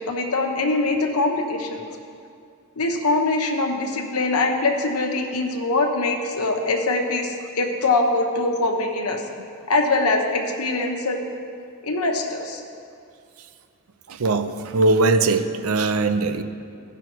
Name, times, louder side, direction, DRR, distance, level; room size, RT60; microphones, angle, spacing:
voice 1, 0.0-1.8 2.8-9.2 9.7-11.2 11.8-12.6, left 2 dB, 80° left, 2 dB, 1.1 m, -23 dB
voice 2, 14.1-16.4, right 3 dB, 70° right, 9 dB, 0.6 m, -20 dB
16.0 x 6.1 x 4.6 m, 2.4 s
head